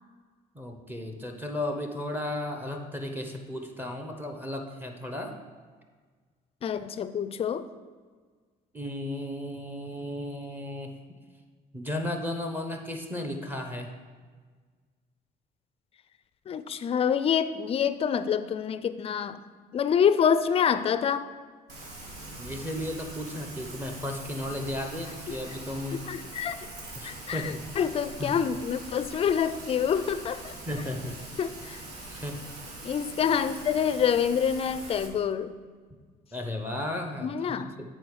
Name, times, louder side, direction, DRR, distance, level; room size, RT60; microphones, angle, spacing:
voice 1, 0.5-5.3 8.7-11.0 11.7-13.9 22.4-26.0 27.0-27.6 28.2-28.3 30.7-31.2 32.1-32.4 36.3-37.7, left 1 dB, 10° right, 3 dB, 0.8 m, -34 dB
voice 2, 6.6-7.7 16.5-19.4 19.7-21.3 25.3-25.4 25.9-26.7 27.0-30.5 31.4-31.8 32.8-35.5 37.2-37.7, left 8 dB, 35° left, 12 dB, 0.4 m, -27 dB
Rain, 21.7-35.1, right 1 dB, 85° right, 1.4 m, -43 dB
7.6 x 4.4 x 4.7 m, 1.5 s
cardioid pair, 110°, 17 cm